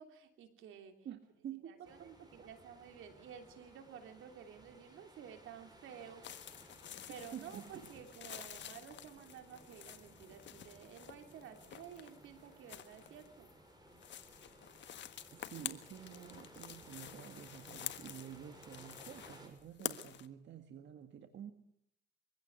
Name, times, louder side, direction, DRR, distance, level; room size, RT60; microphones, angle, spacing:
voice 1, 0.0-0.9 1.6-6.2 7.1-13.5, right 8 dB, 85° right, 6 dB, 3.2 m, -53 dB
voice 2, 1.0-2.5 7.3-7.7 14.9-21.5, right 9 dB, 65° right, 7 dB, 1.7 m, -50 dB
sound 1, 1.8-19.5, right 1 dB, 20° right, 6.8 m, -60 dB
sound 2, 6.2-20.3, left 10 dB, 65° left, 1.5 m, -49 dB
23.0 x 16.0 x 8.1 m, 0.72 s
cardioid pair, 90°, 20 cm